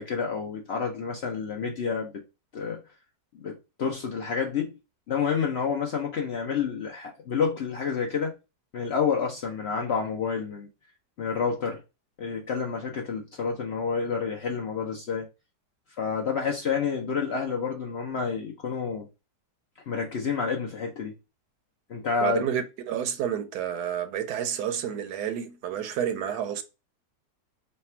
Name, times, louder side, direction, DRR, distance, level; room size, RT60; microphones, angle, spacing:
voice 1, 0.0-2.2 2.5-2.8 3.3-4.8 5.1-8.3 8.7-10.7 11.2-11.8 12.2-15.3 16.0-19.1 19.9-21.1 21.9-22.4, left 6 dB, 70° left, 0.6 m, -29 dB
voice 2, 22.2-26.6, right 9 dB, 75° right, 1.1 m, -30 dB
3.3 x 2.3 x 4.2 m
omnidirectional pair, 1.8 m